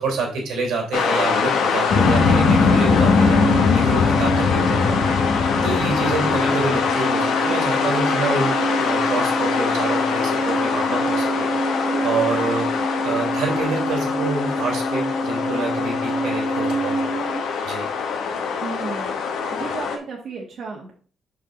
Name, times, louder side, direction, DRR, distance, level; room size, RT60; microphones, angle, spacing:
voice 1, 0.0-17.1 17.6-17.8, right 3 dB, 85° right, 0 dB, 3.1 m, -27 dB
sound 1, 0.9-20.0, left 5 dB, 80° left, 1.2 m, -24 dB
sound 2, 1.9-6.9, left 5 dB, 65° left, 1.0 m, -20 dB
sound 3, 2.0-17.4, equal, 25° right, 1.3 m, -26 dB
voice 2, 18.6-19.1 19.5-20.9, right 4 dB, 60° right, -2 dB, 1.5 m, -33 dB
5.9 x 5.8 x 3.9 m, 0.42 s
cardioid pair, 90°, 0 cm